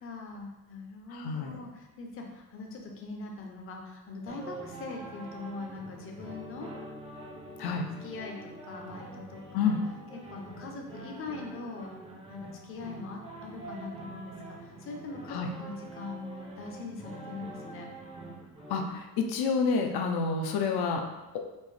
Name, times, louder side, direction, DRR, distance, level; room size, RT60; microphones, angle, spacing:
voice 1, 0.0-6.7 8.0-9.8 10.1-11.9 12.3-17.9, left 3 dB, 35° left, 1 dB, 0.5 m, -42 dB
voice 2, 1.1-1.6 7.6-7.9 9.5-9.8 15.3-15.5 18.7-21.0, left 5 dB, 80° left, 3 dB, 0.6 m, -29 dB
sound 1, 4.3-18.9, right 2 dB, 15° right, 0.5 m, -45 dB
4.4 x 2.8 x 3.2 m, 1.0 s
cardioid pair, 160°, 38 cm